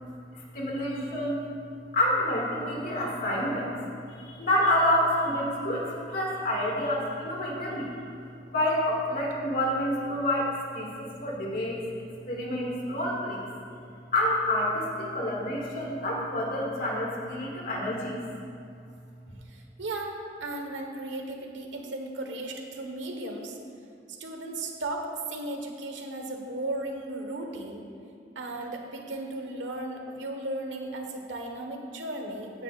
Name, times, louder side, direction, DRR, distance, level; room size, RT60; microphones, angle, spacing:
voice 1, 0.3-1.4 1.9-3.7 4.2-7.9 8.5-10.5 10.7-11.8 12.3-13.4 14.1-18.2, left 1 dB, 50° left, -2 dB, 2.2 m, -28 dB
voice 2, 19.5-23.6 24.1-27.8 28.3-32.6, right 2 dB, 90° right, 2 dB, 1.5 m, -36 dB
16.5 x 9.8 x 2.5 m, 2.5 s
head